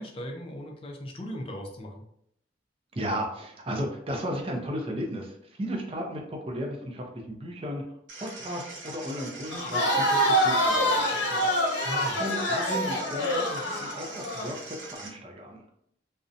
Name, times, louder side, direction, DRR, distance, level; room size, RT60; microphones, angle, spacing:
voice 1, 0.0-2.0 11.8-12.2, equal, 30° left, 1 dB, 0.4 m, -38 dB
voice 2, 3.0-7.8 8.2-11.5 12.2-15.6, equal, 30° right, 1 dB, 0.4 m, -34 dB
sound 1, 8.1-15.1, right 3 dB, 85° right, 0.6 m, -43 dB
Crowd, 9.5-14.5, equal, 80° left, 0.7 m, -26 dB
2.6 x 2.1 x 2.5 m, 0.72 s
head